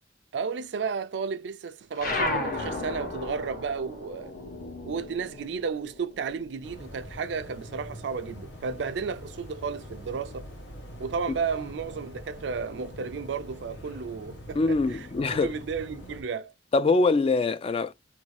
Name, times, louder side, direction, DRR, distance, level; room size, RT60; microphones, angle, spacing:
voice 1, 0.3-4.3 4.8-10.5 11.0-15.1 15.3-16.5, right 5 dB, 70° right, 0.4 m, -33 dB
sound 1, 2.0-6.8 7.1-8.6, left 2 dB, 50° left, 1.0 m, -34 dB
sound 2, 6.6-16.2, left 1 dB, 80° left, 0.9 m, -44 dB
voice 2, 14.6-15.5 16.7-17.9, left 3 dB, 30° left, 0.3 m, -23 dB
2.6 x 2.6 x 3.1 m
head